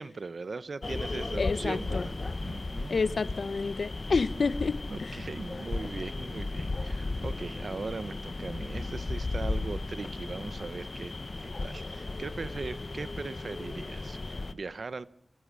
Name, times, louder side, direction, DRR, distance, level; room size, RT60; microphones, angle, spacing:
voice 1, 0.0-2.1 2.4-2.9 4.9-11.1 11.4-15.1, right 4 dB, 65° right, 0.9 m, -39 dB
sound 1, 0.8-14.5, left 2 dB, 45° left, 0.9 m, -35 dB
voice 2, 1.4-2.1 2.9-5.2, left 4 dB, 75° left, 0.7 m, -29 dB
25.0 x 14.0 x 7.6 m
wide cardioid pair, 90°, 0 cm